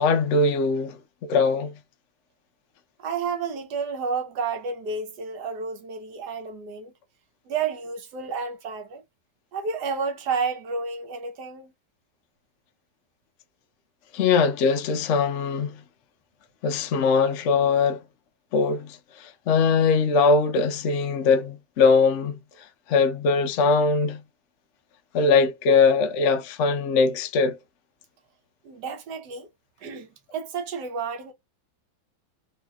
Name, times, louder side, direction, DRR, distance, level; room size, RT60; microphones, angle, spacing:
voice 1, 0.0-1.7 14.1-15.8 16.6-18.0 18.5-22.4 22.9-24.2 25.1-27.6, left 4 dB, 90° left, 0.6 m, -21 dB
voice 2, 3.0-6.9 7.4-9.0 9.5-11.7 28.6-29.5 29.8-31.3, right 5 dB, 65° right, 1.2 m, -31 dB
3.2 x 2.9 x 2.3 m
omnidirectional pair, 2.1 m